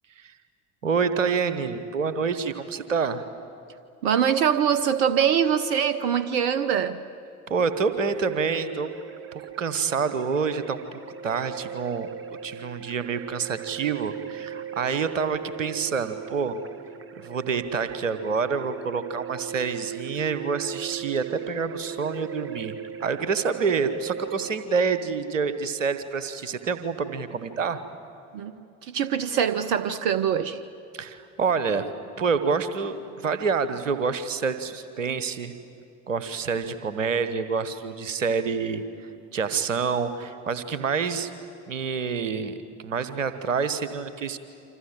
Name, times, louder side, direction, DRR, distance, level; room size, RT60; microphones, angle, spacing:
voice 1, 0.8-3.2 7.5-8.9 9.3-12.1 12.4-16.6 17.2-27.8 30.9-31.8 32.2-35.5 36.1-38.8 39.3-41.3 41.7-42.5 42.8-44.4, right 5 dB, 80° right, 12 dB, 1.2 m, -27 dB
voice 2, 4.0-7.0 28.3-30.6, right 8 dB, 60° right, 13 dB, 0.9 m, -23 dB
sound 1, 8.1-24.5, right 8 dB, 35° right, 1.7 m, -39 dB
28.5 x 26.0 x 7.7 m, 2.7 s
figure-of-eight pair, 50°, 37 cm